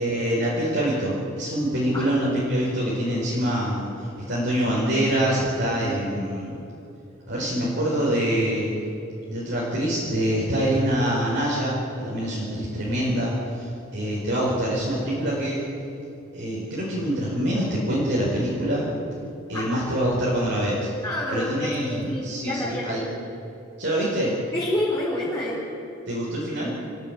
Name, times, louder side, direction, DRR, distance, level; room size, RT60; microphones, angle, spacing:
voice 1, 0.0-6.6 7.3-8.7 9.3-15.6 16.3-18.9 19.5-20.9 21.3-23.0 23.8-24.3 26.1-26.7, equal, 60° right, -6 dB, 4.9 m, -25 dB
voice 2, 5.6-6.1 19.5-19.7 21.0-23.1 24.5-25.6, left 1 dB, 20° left, -8 dB, 4.2 m, -29 dB
26.0 x 14.5 x 8.9 m, 2.8 s
head